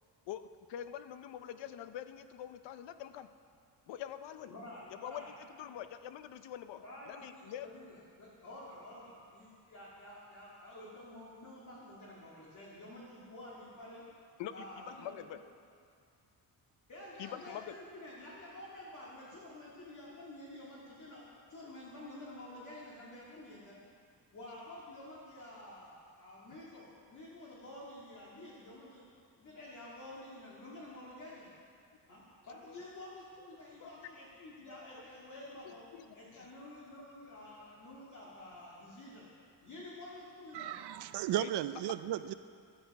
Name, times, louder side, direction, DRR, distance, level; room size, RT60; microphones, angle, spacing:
voice 1, 0.7-3.3 3.9-4.5 5.0-7.7 14.4-15.4 17.2-17.7 33.8-33.9 34.7-35.0 35.6-36.1 41.4-41.5, left 10 dB, 90° left, 11 dB, 0.7 m, -45 dB
voice 2, 4.5-5.3 5.6-5.8 6.8-14.0 14.5-15.2 16.9-23.8 24.3-29.0 29.4-31.5 32.1-35.8 36.1-39.3 39.6-40.8, left 1 dB, 45° left, -6 dB, 2.1 m, -50 dB
voice 3, 40.5-42.3, right 12 dB, 70° right, 12 dB, 0.5 m, -35 dB
13.0 x 13.0 x 4.7 m, 2.3 s
cardioid pair, 170°, 42 cm